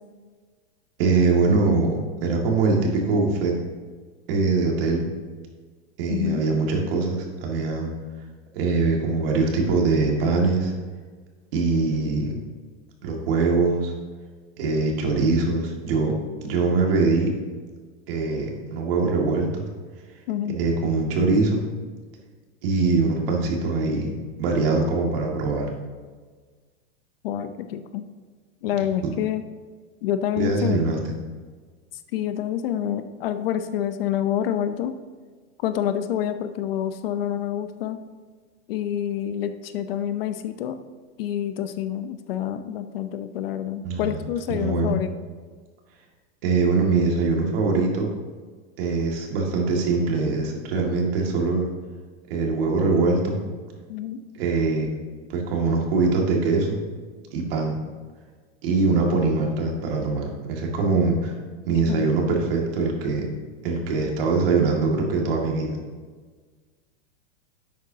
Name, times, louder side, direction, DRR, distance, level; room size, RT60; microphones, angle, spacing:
voice 1, 1.0-3.5 4.3-5.1 6.0-7.9 8.5-10.7 11.5-12.3 13.0-13.9 14.6-16.1 16.4-17.3 18.1-19.6 20.5-21.6 22.6-25.7 30.4-31.0 43.8-44.2 44.5-45.0 46.4-48.1 48.8-51.7 52.3-53.4 54.3-54.9 55.3-56.8 57.3-57.8 58.6-61.3 61.7-63.2 63.6-65.8, right 3 dB, 60° right, 0 dB, 2.1 m, -22 dB
voice 2, 6.1-6.4 20.3-20.6 27.2-28.1 28.6-29.4 30.0-30.8 32.1-34.9 35.6-38.0 38.7-40.8 41.2-45.1 53.9-54.2 61.9-62.1, left 10 dB, 60° left, 10 dB, 0.7 m, -27 dB
11.0 x 7.8 x 2.8 m, 1.5 s
supercardioid pair, 160°, 33 cm